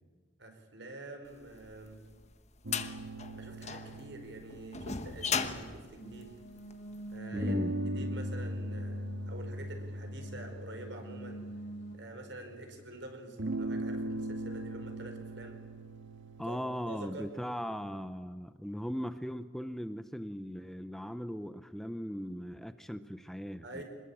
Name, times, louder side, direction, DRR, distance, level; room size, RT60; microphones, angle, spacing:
voice 1, 0.4-2.0 3.4-6.3 7.1-7.5 7.9-11.4 11.9-15.6 16.5-16.6 16.9-17.3 23.6-23.8, right 2 dB, 70° right, 5 dB, 4.9 m, -47 dB
sound 1, 1.6-7.0, left 6 dB, 35° left, 1.3 m, -37 dB
sound 2, 2.6-6.6 7.3-12.4 13.4-17.6, right 1 dB, 85° right, 1.6 m, -40 dB
sound 3, 6.0-11.9, right 2 dB, 85° left, 3.9 m, -47 dB
voice 2, 7.3-7.8 16.4-23.8, equal, ahead, 11 dB, 0.7 m, -38 dB
25.0 x 20.5 x 8.6 m, 1.5 s
head